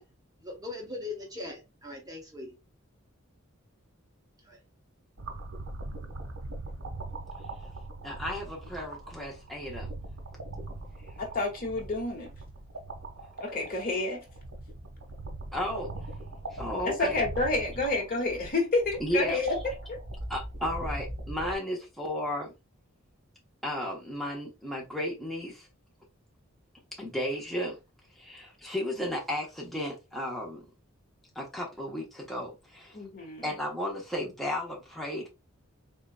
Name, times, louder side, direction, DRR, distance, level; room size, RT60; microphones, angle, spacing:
voice 1, 0.5-2.5 4.4-4.6, left 2 dB, 20° right, 0.8 m, -40 dB
sound 1, 5.2-21.6, right 2 dB, 70° right, 1.1 m, -41 dB
voice 2, 8.0-9.9 15.5-15.9 16.5-17.2 19.0-19.4 20.3-22.5 23.6-25.7 26.9-27.8 28.2-30.6 31.3-33.0 33.4-35.3, left 1 dB, ahead, 1.1 m, -34 dB
voice 3, 11.2-12.3 13.4-14.2 16.8-19.6 19.9-20.0 32.9-33.6, left 2 dB, 45° left, 1.5 m, -29 dB
3.9 x 3.6 x 2.2 m
head